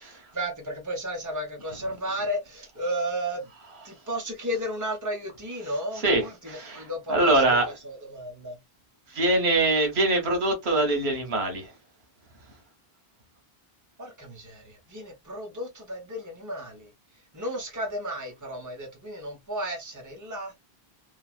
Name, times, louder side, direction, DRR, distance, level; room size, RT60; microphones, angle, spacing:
voice 1, 0.0-3.5 3.8-7.6 7.8-8.6 14.0-16.9 17.3-20.6, equal, 20° right, 1.0 m, -33 dB
voice 2, 5.9-7.7 9.1-11.7, right 2 dB, 90° right, 1.3 m, -23 dB
3.2 x 2.4 x 2.4 m
omnidirectional pair, 1.0 m